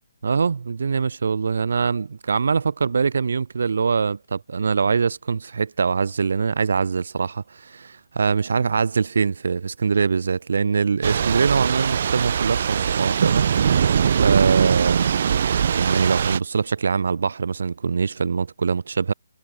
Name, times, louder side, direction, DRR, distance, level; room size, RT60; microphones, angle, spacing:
voice 1, 0.2-13.5 14.1-15.1 15.7-19.1, right 5 dB, 70° right, 1.5 m, -23 dB
Thunder / Rain, 11.0-16.4, right 7 dB, 45° right, 0.4 m, -21 dB
hypercardioid pair, 175°, 0 cm